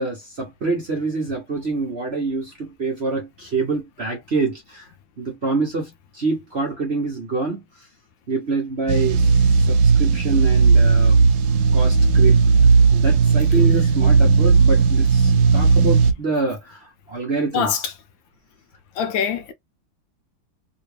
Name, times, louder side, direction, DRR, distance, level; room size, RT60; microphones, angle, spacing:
voice 1, 0.0-4.9 5.2-7.6 8.3-9.2 9.7-11.2 11.7-12.4 12.9-17.9, right 3 dB, 45° right, 0.9 m, -26 dB
sound 1, 8.9-16.1, right 4 dB, 85° right, 0.8 m, -15 dB
voice 2, 19.0-19.5, left 7 dB, 75° left, 1.2 m, -23 dB
3.1 x 3.0 x 3.2 m
omnidirectional pair, 2.3 m